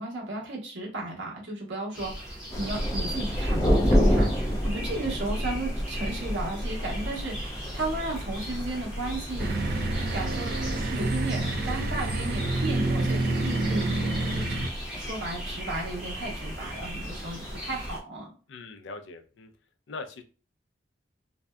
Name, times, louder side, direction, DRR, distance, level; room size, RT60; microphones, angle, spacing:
voice 1, 0.0-14.4 14.9-18.3, right 2 dB, 85° right, -2 dB, 1.0 m, -35 dB
sound 1, 1.9-18.0, equal, 5° right, 0.8 m, -40 dB
Thunder, 2.5-18.0, equal, 20° left, 0.5 m, -30 dB
sound 2, 9.4-14.7, right 2 dB, 55° right, 0.4 m, -28 dB
voice 2, 18.5-19.5 19.9-20.2, left 3 dB, 80° left, 6 dB, 0.4 m, -41 dB
2.6 x 2.2 x 2.2 m, 0.35 s
head